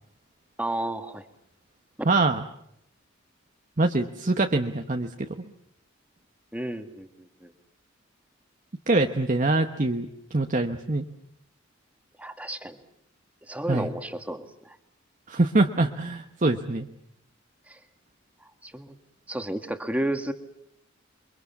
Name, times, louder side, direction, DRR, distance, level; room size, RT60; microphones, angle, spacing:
voice 1, 0.6-1.2 6.5-7.5 12.2-12.8 13.5-14.8 17.7-17.8 18.6-19.0 19.3-20.3, right 1 dB, 5° right, 7 dB, 1.8 m, -32 dB
voice 2, 2.0-2.4 3.8-5.4 8.9-11.0 13.7-13.9 15.3-16.9, right 2 dB, 40° right, 5 dB, 1.1 m, -24 dB
28.5 x 23.5 x 7.1 m, 0.75 s
head